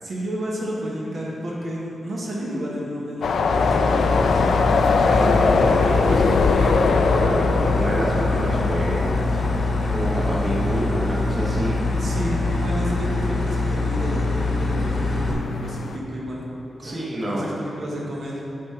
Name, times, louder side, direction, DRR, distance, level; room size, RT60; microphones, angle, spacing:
voice 1, 0.0-4.4 12.0-16.4 16.8-18.4, equal, 55° right, -4 dB, 1.0 m, -31 dB
sound 1, 3.2-16.0, left 4 dB, 80° left, 0.3 m, -23 dB
sound 2, 3.5-15.3, left 2 dB, 45° left, 0.9 m, -24 dB
voice 2, 5.1-9.6 9.9-11.8 16.8-17.5, right 1 dB, 25° right, -5 dB, 1.1 m, -27 dB
8.0 x 3.5 x 5.7 m, 2.9 s
wide cardioid pair, 120°, 0 cm